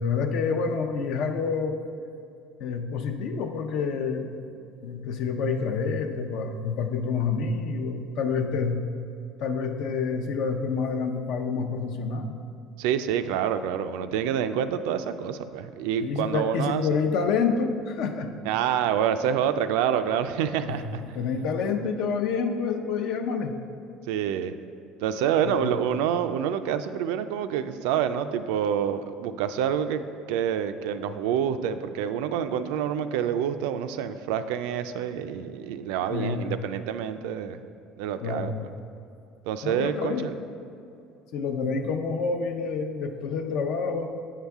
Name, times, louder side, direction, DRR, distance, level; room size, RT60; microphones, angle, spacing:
voice 1, 0.0-1.8 2.6-4.4 4.8-8.8 9.4-12.4 16.0-18.3 20.6-23.6 25.4-25.7 36.1-36.4 38.2-38.7 39.6-40.3 41.3-44.1, left 5 dB, 60° left, 6 dB, 0.6 m, -28 dB
voice 2, 12.8-16.9 18.5-21.0 24.1-24.5 25.0-30.0 30.3-37.6 38.0-38.5 39.5-40.3, right 8 dB, 85° right, 10 dB, 0.3 m, -27 dB
8.4 x 5.6 x 3.5 m, 2.6 s
cardioid pair, 140°, 0 cm